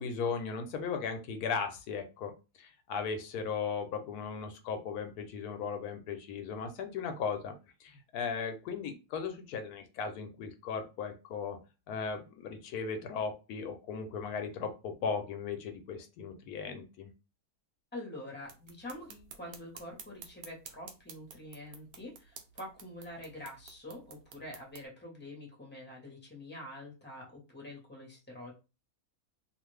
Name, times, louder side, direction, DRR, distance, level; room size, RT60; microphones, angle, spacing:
voice 1, 0.0-2.3 2.6-7.5 7.8-11.6 11.9-17.1, left 5 dB, 85° left, 6 dB, 1.1 m, -37 dB
voice 2, 17.9-28.5, left 1 dB, 10° left, -1 dB, 0.9 m, -46 dB
sound 1, 18.4-24.9, right 6 dB, 75° right, 1.1 m, -52 dB
2.6 x 2.5 x 3.2 m, 0.30 s
omnidirectional pair, 1.6 m